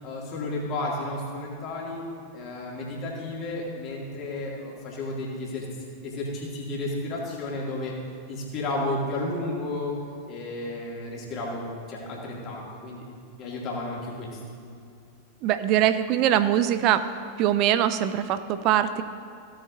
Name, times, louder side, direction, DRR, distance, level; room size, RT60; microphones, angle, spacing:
voice 1, 0.0-2.0 2.3-5.6 6.0-7.9 8.3-9.9 10.3-13.1 13.4-14.4, left 2 dB, 35° left, -4 dB, 2.6 m, -32 dB
voice 2, 15.4-17.0 17.4-19.0, right 11 dB, 40° right, 12 dB, 0.4 m, -22 dB
16.0 x 7.9 x 2.7 m, 2.5 s
figure-of-eight pair, 90°, 0 cm